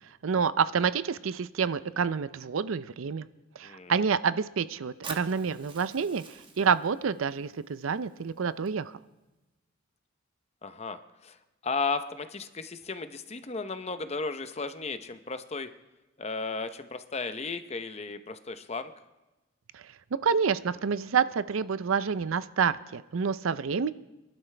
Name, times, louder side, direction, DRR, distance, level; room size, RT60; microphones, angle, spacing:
voice 1, 0.2-3.3 3.6-8.9 19.7-19.8 20.2-23.9, right 6 dB, 75° right, 15 dB, 0.5 m, -28 dB
voice 2, 3.6-3.9 10.6-11.4 11.6-15.7 16.2-18.9, left 4 dB, 30° left, 9 dB, 0.7 m, -34 dB
Fire, 5.0-9.0, right 4 dB, 25° right, 1.1 m, -47 dB
27.5 x 12.0 x 3.3 m, 1.1 s
head